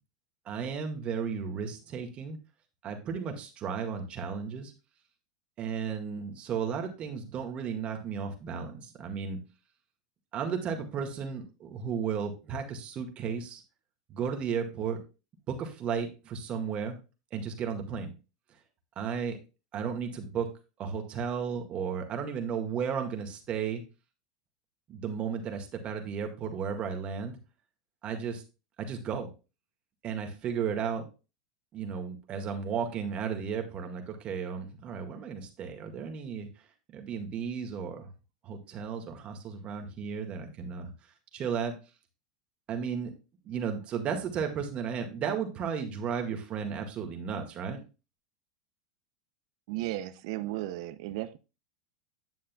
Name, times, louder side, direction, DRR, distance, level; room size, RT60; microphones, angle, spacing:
voice 1, 0.5-2.4 2.8-4.7 5.6-9.4 10.3-13.6 14.1-15.0 15.5-17.0 17.3-18.1 19.0-19.4 19.7-20.5 20.8-23.8 24.9-27.4 28.0-28.4 28.8-29.3 30.0-31.0 31.7-36.5 36.9-38.1 38.4-40.9 41.3-41.8 42.7-43.1 43.4-47.8, right 6 dB, 35° right, 1.9 m, -34 dB
voice 2, 49.7-51.4, right 15 dB, 65° right, 0.7 m, -35 dB
9.6 x 7.3 x 2.3 m
hypercardioid pair, 115°, 3 cm